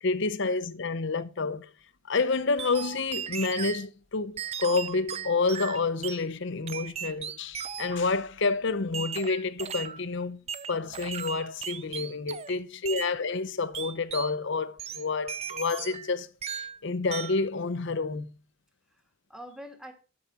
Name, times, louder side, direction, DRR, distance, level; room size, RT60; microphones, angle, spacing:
voice 1, 0.0-1.7 2.1-16.3 16.8-18.3, left 3 dB, 55° left, 0.7 m, -29 dB
sound 1, 2.6-3.8 4.4-6.2 6.7-8.1 8.9-10.0 10.5-12.6 12.9-13.1 13.7-14.3 14.8-16.1 16.4-16.8 17.1-17.5, right 8 dB, 30° right, 0.5 m, -37 dB
voice 2, 12.5-13.0 18.9-19.9, equal, 5° right, 1.5 m, -47 dB
12.5 x 4.9 x 5.7 m
head